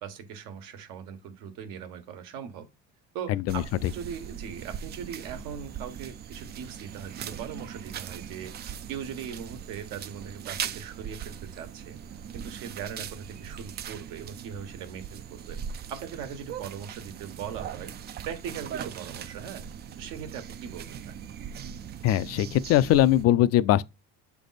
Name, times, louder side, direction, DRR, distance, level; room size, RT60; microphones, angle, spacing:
voice 1, 0.0-2.7 3.1-8.5 8.9-12.0 12.3-15.6 15.9-17.9 18.2-19.6 20.0-21.1, right 8 dB, 75° right, 1.4 m, -40 dB
voice 2, 3.3-3.9 22.0-23.8, left 13 dB, 50° left, 0.4 m, -22 dB
sound 1, 3.5-23.2, right 8 dB, 30° right, 0.4 m, -40 dB
7.4 x 3.4 x 4.0 m
cardioid pair, 115°, 32 cm